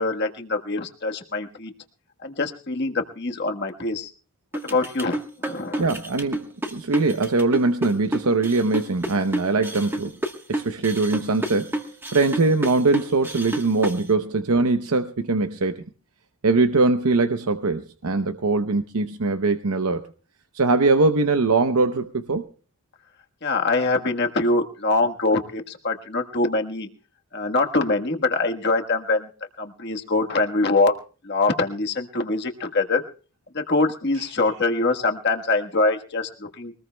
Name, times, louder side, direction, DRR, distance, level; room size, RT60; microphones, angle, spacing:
voice 1, 0.0-1.7 2.2-4.1 4.6-5.9 23.4-26.9 27.3-29.3 29.6-30.9 31.2-33.0 33.5-36.7, left 3 dB, 50° left, 1.4 m, -24 dB
sound 1, 4.5-14.0, right 1 dB, 10° right, 1.2 m, -30 dB
voice 2, 5.8-6.4 6.7-10.2 10.5-11.8 12.1-15.8 16.4-20.1 20.5-22.5, right 3 dB, 90° right, 0.8 m, -22 dB
23.0 x 19.0 x 2.2 m
head